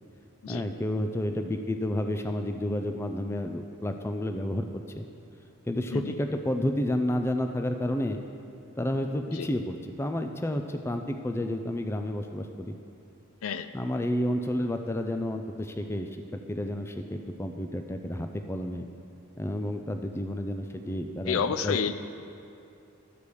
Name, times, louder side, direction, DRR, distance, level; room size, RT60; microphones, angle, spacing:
voice 1, 0.5-5.1 5.7-8.2 8.8-12.8 13.7-18.9 19.4-21.8, left 1 dB, 10° left, 6 dB, 0.3 m, -31 dB
voice 2, 21.3-22.0, left 6 dB, 75° left, 11 dB, 0.4 m, -29 dB
11.5 x 4.9 x 6.9 m, 2.7 s
head